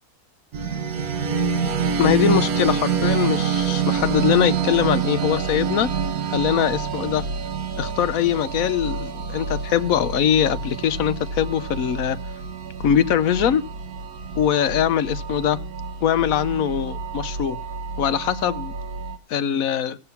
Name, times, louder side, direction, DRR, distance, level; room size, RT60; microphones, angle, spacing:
sound 1, 0.5-19.2, right 6 dB, 80° right, 1.4 m, -27 dB
voice 1, 2.0-5.9 6.3-7.3 7.8-12.2 12.8-13.7 14.4-15.6 16.0-17.6 18.0-18.7 19.3-20.0, left 9 dB, 70° left, 1.1 m, -22 dB
15.5 x 7.8 x 5.7 m
omnidirectional pair, 1.5 m